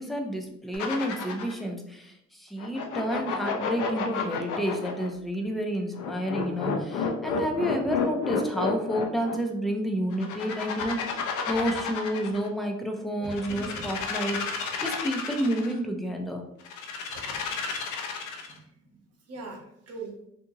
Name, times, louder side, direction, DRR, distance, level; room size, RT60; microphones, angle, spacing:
voice 1, 0.0-16.4, equal, ahead, 2 dB, 0.4 m, -30 dB
sound 1, 0.7-1.6 2.6-5.1 5.9-9.4 10.1-12.5 13.2-15.7 16.6-18.6, left 6 dB, 80° left, 0.6 m, -31 dB
voice 2, 13.0-13.9 17.1-17.5 18.5-19.0 19.3-20.1, right 3 dB, 55° right, 0 dB, 0.9 m, -42 dB
2.7 x 2.7 x 2.4 m, 0.79 s
cardioid pair, 90°, 30 cm